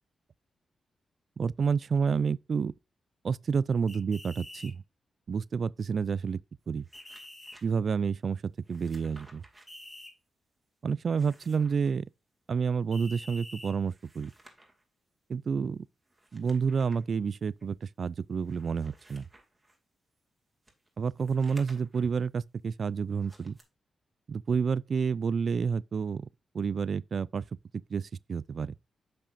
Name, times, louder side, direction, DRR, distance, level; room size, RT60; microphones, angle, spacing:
voice 1, 1.4-2.7 3.2-4.8 5.3-6.4 6.7-6.8 7.6-9.4 10.8-12.0 12.5-14.3 15.3-15.9 16.3-19.2 21.0-23.6 24.3-26.3 26.5-27.4 27.9-28.7, right 6 dB, 60° right, 0.3 m, -29 dB
sound 1, 3.9-4.7 6.9-7.6 9.7-10.1 12.9-13.7, left 1 dB, 20° left, 2.6 m, -46 dB
sound 2, 6.6-7.6 8.6-9.7 11.0-11.9 13.7-14.8 16.1-17.1 17.6-17.7 18.4-19.8 20.6-22.1 23.1-23.6, right 1 dB, 20° right, 2.3 m, -57 dB
8.6 x 5.7 x 2.6 m
cardioid pair, 55°, 0 cm